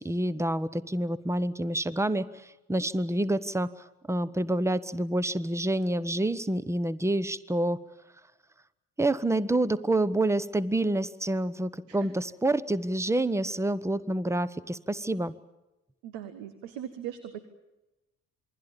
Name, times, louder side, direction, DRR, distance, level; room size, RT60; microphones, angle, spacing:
voice 1, 0.0-3.7 4.1-7.8 9.0-15.3, right 1 dB, 5° right, 18 dB, 1.1 m, -28 dB
voice 2, 16.0-17.4, right 10 dB, 70° right, 11 dB, 1.6 m, -39 dB
27.5 x 21.5 x 7.3 m, 1.0 s
hypercardioid pair, 50°, 45 cm